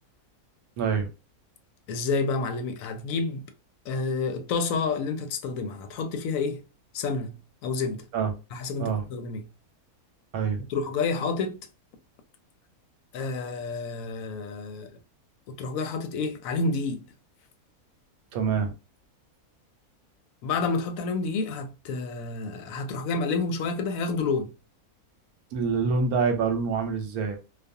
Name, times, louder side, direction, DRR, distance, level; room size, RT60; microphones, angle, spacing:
voice 1, 0.8-1.1 8.1-8.3 8.8-9.1 10.3-10.6 18.3-18.7 25.5-27.4, right 5 dB, 80° right, 1.2 m, -26 dB
voice 2, 1.9-3.4 3.9-6.6 6.9-7.4 7.6-8.0 8.5-9.4 10.7-11.6 13.1-14.9 15.5-17.0 20.4-24.5, left 4 dB, 70° left, 0.9 m, -29 dB
2.4 x 2.4 x 2.6 m
omnidirectional pair, 1.5 m